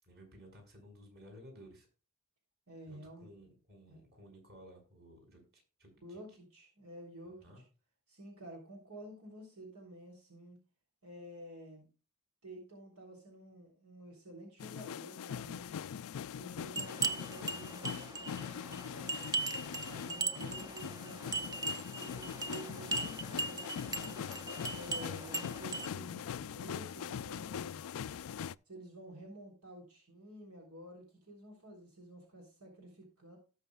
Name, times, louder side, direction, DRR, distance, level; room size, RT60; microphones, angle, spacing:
voice 1, 0.0-1.9 2.9-6.2 7.4-7.6 24.8-25.3, equal, 50° right, 1 dB, 5.5 m, -56 dB
voice 2, 2.7-3.3 3.9-4.0 6.0-7.6 8.1-10.6 11.0-11.9 12.4-15.7 16.4-19.2 19.7-24.2 24.7-27.8 28.7-33.4, right 1 dB, 75° right, 1 dB, 3.5 m, -51 dB
sound 1, 14.6-28.6, left 8 dB, 65° left, 0.4 m, -42 dB
sound 2, 16.8-25.9, right 3 dB, 15° right, 0.6 m, -39 dB
18.5 x 6.3 x 2.4 m, 0.34 s
head